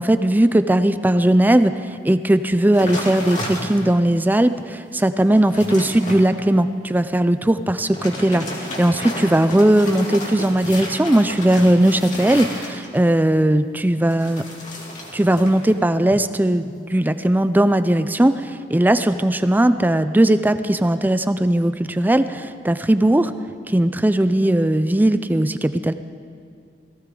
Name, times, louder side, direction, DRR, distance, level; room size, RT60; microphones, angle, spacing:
voice 1, 0.0-1.7 2.0-8.4 8.8-14.4 15.1-18.4 18.7-23.3 23.7-25.9, right 1 dB, 10° right, 11 dB, 0.4 m, -18 dB
sound 1, 2.7-4.0 4.6-4.7 5.1-6.2 7.8-13.1 14.1-15.8 16.1-16.5, left 1 dB, 45° left, 2.5 m, -32 dB
17.5 x 16.0 x 3.8 m, 2.4 s
head